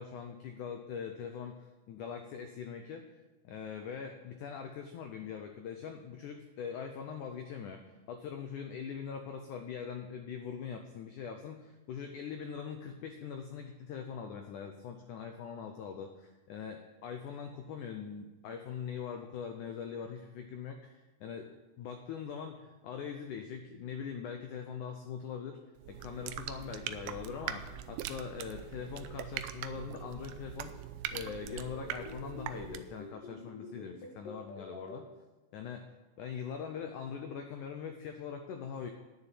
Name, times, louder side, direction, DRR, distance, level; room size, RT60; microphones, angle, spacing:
voice 1, 0.0-3.0 3.4-7.8 8.1-25.6 25.9-30.7 31.1-35.1 35.5-35.9 36.2-38.9, left 7 dB, 90° left, 5 dB, 1.7 m, -42 dB
sound 1, 25.8-33.0, right 11 dB, 80° right, 2.3 m, -42 dB
sound 2, 31.1-35.0, left 3 dB, 60° left, 3.2 m, -46 dB
9.9 x 6.9 x 9.1 m, 1.1 s
omnidirectional pair, 4.7 m